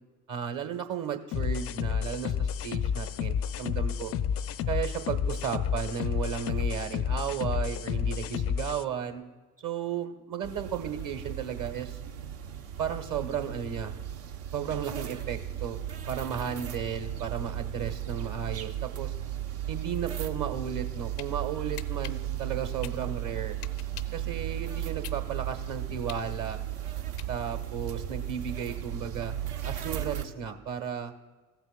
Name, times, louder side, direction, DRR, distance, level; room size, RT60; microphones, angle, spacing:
voice 1, 0.3-4.1 4.7-9.2 9.6-12.0 12.8-13.9 14.5-15.8 16.1-19.1 19.7-23.5 24.1-26.6 27.3-29.3 29.6-31.1, right 8 dB, 45° right, 7 dB, 1.3 m, -34 dB
sound 1, 1.3-8.8, left 8 dB, 30° left, 0.4 m, -30 dB
sound 2, 10.4-30.2, right 11 dB, 65° right, 0.9 m, -35 dB
sound 3, 21.1-21.3 21.8-24.2 24.7-27.7, left 14 dB, 80° left, 0.6 m, -45 dB
15.5 x 8.1 x 2.2 m, 1.3 s
figure-of-eight pair, 60°, 46 cm